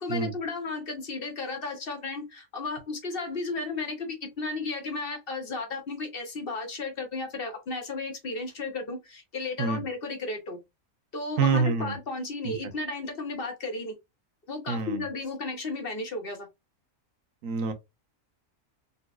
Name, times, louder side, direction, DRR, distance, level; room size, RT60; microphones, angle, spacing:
voice 1, 0.0-10.6 11.1-13.9 14.5-16.5, left 3 dB, 50° left, 1.0 m, -34 dB
voice 2, 11.4-11.9 12.4-12.6 14.7-15.0 17.4-17.7, right 5 dB, 80° right, 1.1 m, -26 dB
4.0 x 2.3 x 2.3 m
omnidirectional pair, 1.4 m